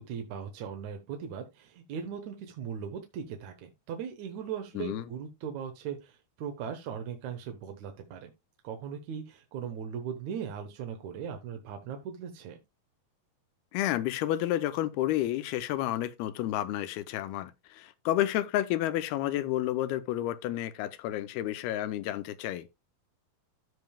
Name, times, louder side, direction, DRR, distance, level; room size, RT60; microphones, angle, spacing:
voice 1, 0.0-8.3 8.6-12.6, right 7 dB, 65° right, 2.0 m, -39 dB
voice 2, 13.7-22.7, left 13 dB, 85° left, 2.6 m, -30 dB
15.5 x 5.3 x 2.2 m
omnidirectional pair, 4.4 m